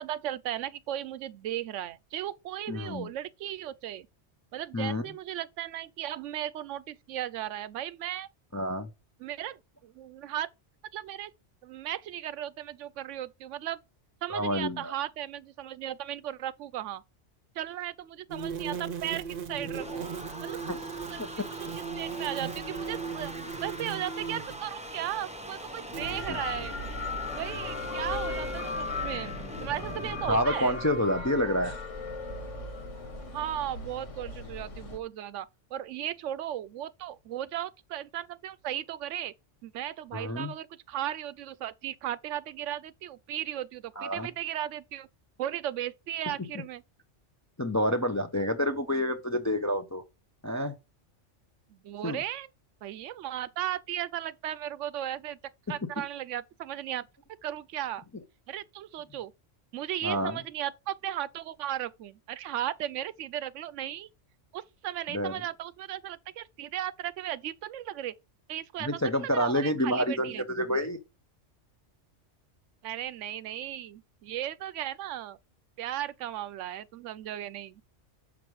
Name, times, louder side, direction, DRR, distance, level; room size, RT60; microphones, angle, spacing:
voice 1, 0.0-4.1 4.5-8.3 9.2-10.5 10.9-11.3 11.6-13.8 14.2-17.0 17.6-20.1 20.4-20.6 21.1-26.7 27.3-30.8 33.3-39.3 39.6-45.1 45.4-46.8 51.7-52.5 52.8-55.4 55.7-57.1 57.4-58.0 58.5-59.3 59.7-64.1 64.5-68.1 68.5-70.4 72.8-75.4 75.8-77.8, right 12 dB, 80° right, 0.9 m, -36 dB
voice 2, 2.7-3.1 4.7-5.0 8.5-8.9 14.3-14.9 20.7-20.8 21.2-21.3 26.3-26.4 30.3-31.7 40.1-40.5 44.0-44.3 47.6-50.0 50.4-50.8 52.0-52.2 60.0-60.4 65.1-65.4 68.8-71.0, equal, 25° left, 0.4 m, -28 dB
sound 1, 18.3-24.7 25.9-26.2, right 6 dB, 50° right, 0.8 m, -37 dB
sound 2, 19.2-30.4, right 1 dB, 5° right, 0.7 m, -42 dB
sound 3, 26.0-35.0, left 3 dB, 85° left, 1.8 m, -37 dB
6.0 x 5.1 x 4.7 m
omnidirectional pair, 1.2 m